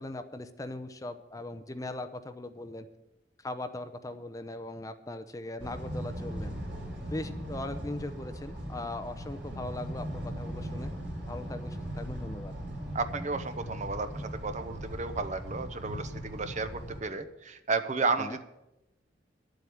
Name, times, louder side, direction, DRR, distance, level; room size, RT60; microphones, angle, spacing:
voice 1, 0.0-2.9 3.4-6.5 7.1-10.9 11.3-12.5 18.2-18.4, left 2 dB, 20° left, 9 dB, 0.7 m, -39 dB
sound 1, 5.6-17.0, equal, 80° right, 3.7 m, -39 dB
voice 2, 12.9-18.4, right 4 dB, 45° right, 10 dB, 0.9 m, -33 dB
11.0 x 7.8 x 8.5 m, 0.91 s
head